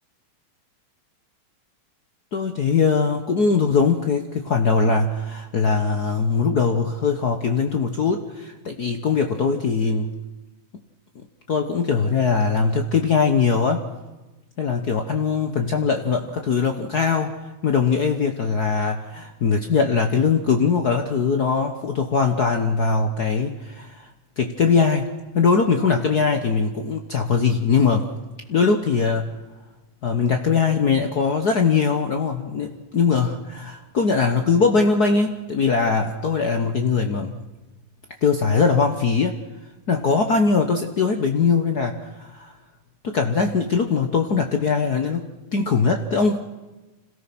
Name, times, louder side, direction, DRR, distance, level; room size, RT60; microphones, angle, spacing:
voice 1, 2.3-10.1 11.5-13.9 14.6-17.3 17.6-24.1 24.4-28.1 28.5-29.3 30.0-37.3 38.2-39.4 39.9-42.5 43.0-46.5, left 5 dB, 85° left, 5 dB, 0.8 m, -21 dB
26.5 x 17.5 x 6.0 m, 1.1 s
omnidirectional pair, 3.6 m